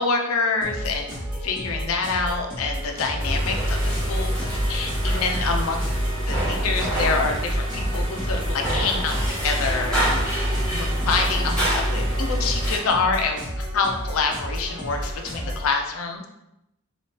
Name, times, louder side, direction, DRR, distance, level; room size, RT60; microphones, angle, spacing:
voice 1, 0.0-5.8 6.3-9.2 9.4-10.3 10.7-16.3, left 4 dB, 75° left, 3 dB, 0.5 m, -26 dB
sound 1, 0.6-15.7, equal, 20° right, 1.1 m, -32 dB
sound 2, 3.2-12.8, equal, 5° left, 1.3 m, -25 dB
3.0 x 2.4 x 2.8 m, 0.86 s
head